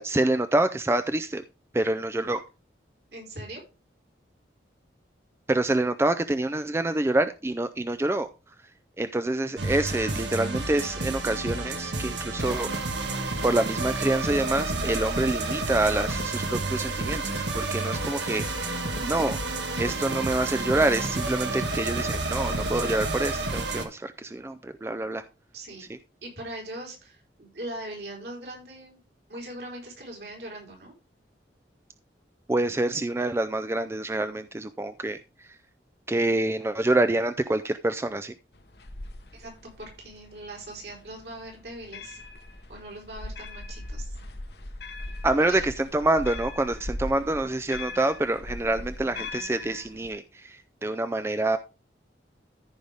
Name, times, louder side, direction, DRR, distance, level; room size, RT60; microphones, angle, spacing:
voice 1, 0.0-1.4 1.7-2.4 5.5-8.3 9.0-12.7 13.4-19.4 19.8-25.2 32.5-35.6 36.1-38.3 45.2-51.6, right 2 dB, 15° right, 11 dB, 0.3 m, -27 dB
voice 2, 3.1-3.6 25.5-25.9 26.2-29.0 29.3-30.9 39.3-42.2 42.7-44.1 45.4-45.7, right 1 dB, 65° right, -1 dB, 4.1 m, -40 dB
sound 1, 9.6-23.8, right 2 dB, 80° right, 1.5 m, -30 dB
sound 2, 38.5-50.1, left 2 dB, 70° left, 1.0 m, -39 dB
14.0 x 5.2 x 3.5 m, 0.31 s
head